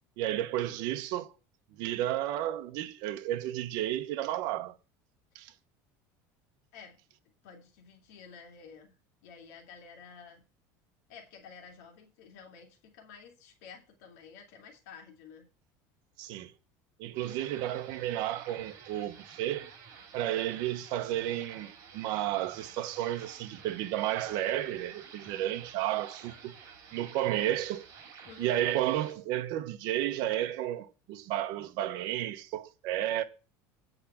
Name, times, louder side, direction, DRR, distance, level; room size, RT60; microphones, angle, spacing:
voice 1, 0.2-1.3 1.7-4.7 5.3-5.5 16.2-16.5 17.0-19.7 20.1-26.5 26.9-27.8 28.4-33.2, right 13 dB, 55° right, 1.1 m, -32 dB
voice 2, 7.4-8.9 9.2-10.4 11.1-15.5 28.3-28.6, left 6 dB, 80° left, 2.3 m, -51 dB
sound 1, 17.1-29.1, right 6 dB, 40° right, 3.5 m, -51 dB
8.5 x 4.9 x 7.2 m
cardioid pair, 165°, 8 cm